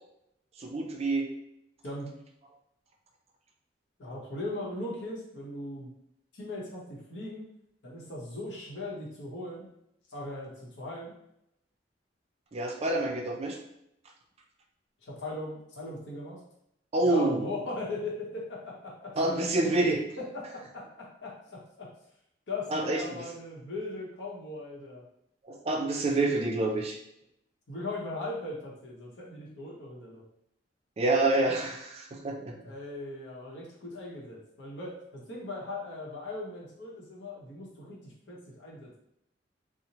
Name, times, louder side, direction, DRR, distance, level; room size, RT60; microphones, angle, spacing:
voice 1, 0.6-1.3 12.5-13.6 16.9-17.5 19.2-20.0 22.7-23.2 25.5-27.0 31.0-32.5, right 2 dB, 35° right, 1 dB, 0.4 m, -27 dB
voice 2, 1.8-2.2 4.0-5.9 6.3-7.5 7.8-9.7 10.1-11.1 15.0-16.4 17.0-19.2 20.2-21.9 22.5-25.1 27.7-30.2 32.6-38.9, left 2 dB, 80° left, -3 dB, 0.8 m, -39 dB
2.7 x 2.0 x 2.8 m, 0.78 s
head